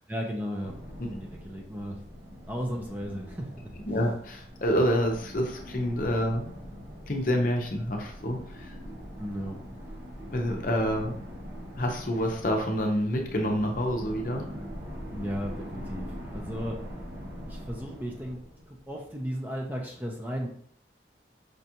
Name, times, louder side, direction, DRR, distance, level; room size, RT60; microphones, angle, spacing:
voice 1, 0.1-0.7 1.1-2.0 2.5-3.7 9.2-9.6 15.1-16.8 17.5-20.5, equal, 10° right, -1 dB, 0.5 m, -35 dB
sound 1, 0.6-19.1, equal, 75° right, 0.9 m, -42 dB
voice 2, 3.9-6.5 7.1-8.4 10.3-11.2 11.8-14.5, equal, 50° left, 2 dB, 0.6 m, -27 dB
5.1 x 2.4 x 2.8 m, 0.62 s
head